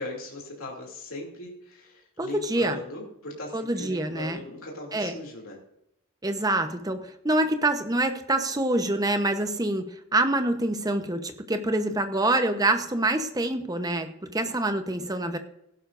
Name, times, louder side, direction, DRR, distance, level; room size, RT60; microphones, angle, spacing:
voice 1, 0.0-5.6, left 2 dB, 75° left, -1 dB, 2.8 m, -39 dB
voice 2, 2.2-2.8 3.5-4.4 4.9-5.1 6.2-15.4, right 2 dB, 15° right, 7 dB, 0.9 m, -26 dB
16.5 x 11.5 x 2.6 m, 0.80 s
head